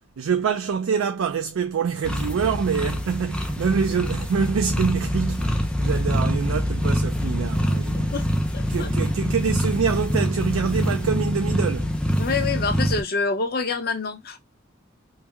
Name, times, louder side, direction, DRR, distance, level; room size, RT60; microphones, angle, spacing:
voice 1, 0.2-8.2 8.7-12.0, right 6 dB, 90° right, 0.4 m, -25 dB
sound 1, 2.0-13.0, equal, 5° left, 0.4 m, -25 dB
voice 2, 8.5-8.9 12.2-14.4, left 4 dB, 50° left, 0.7 m, -26 dB
3.2 x 2.1 x 3.3 m
head